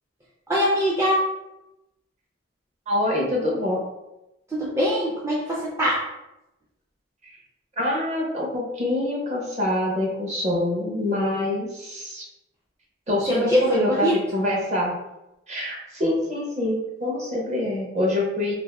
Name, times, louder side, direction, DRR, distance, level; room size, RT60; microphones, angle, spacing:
voice 1, 0.5-1.2 4.5-6.1 13.3-14.1, equal, 15° right, -6 dB, 0.4 m, -22 dB
voice 2, 2.9-3.8 7.2-7.4 7.8-12.2 13.1-14.9 15.5-18.5, left 1 dB, 35° right, -2 dB, 0.8 m, -25 dB
2.6 x 2.6 x 3.3 m, 0.92 s
head